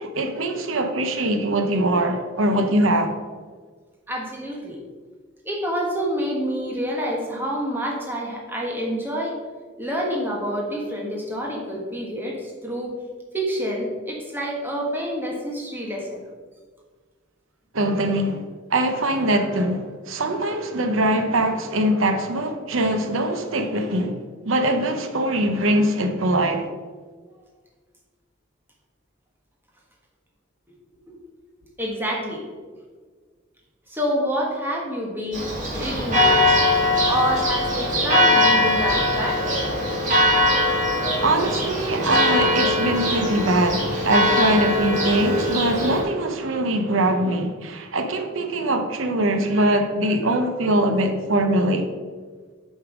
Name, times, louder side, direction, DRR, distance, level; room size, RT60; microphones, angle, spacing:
voice 1, 0.0-3.1 17.7-18.4 18.7-24.2 24.4-26.7 41.2-51.9, right 1 dB, 80° right, 0.9 m, -22 dB
voice 2, 4.1-4.8 5.4-9.4 9.8-12.9 13.3-16.2 31.1-31.2 31.8-32.4 33.9-35.4 35.7-36.8 37.1-39.5 40.9-41.0, equal, 10° right, 1.4 m, -27 dB
Church bell, 35.3-46.0, left 1 dB, 35° right, 2.2 m, -21 dB
8.1 x 5.5 x 5.0 m
head